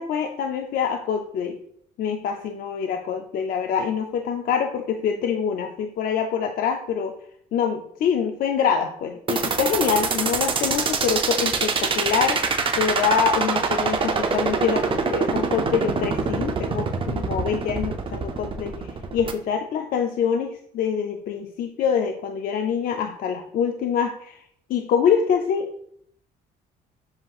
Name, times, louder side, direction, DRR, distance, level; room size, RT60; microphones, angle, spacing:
voice 1, 0.0-1.6 2.0-7.1 7.5-12.4 12.8-18.7 19.1-24.4 24.7-25.8, left 7 dB, 55° left, 4 dB, 0.5 m, -25 dB
sound 1, 9.3-19.3, right 5 dB, 30° right, 0.5 m, -24 dB
7.5 x 2.9 x 2.4 m, 0.67 s
cardioid pair, 110°, 17 cm